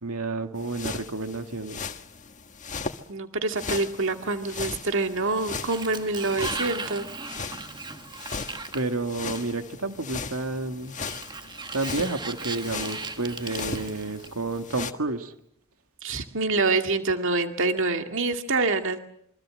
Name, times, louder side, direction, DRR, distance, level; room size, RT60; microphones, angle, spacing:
voice 1, 0.0-1.8 8.7-11.0 11.7-15.3, right 2 dB, 85° right, 6 dB, 2.0 m, -30 dB
sound 1, 0.6-3.0 3.5-14.9, left 4 dB, 35° left, 1.6 m, -38 dB
voice 2, 3.1-7.1 16.0-19.0, right 3 dB, 60° right, 6 dB, 2.1 m, -26 dB
Sliding door, 5.1-9.7 10.9-14.6, right 4 dB, 20° right, 1.4 m, -38 dB
27.0 x 24.5 x 7.8 m, 0.72 s
head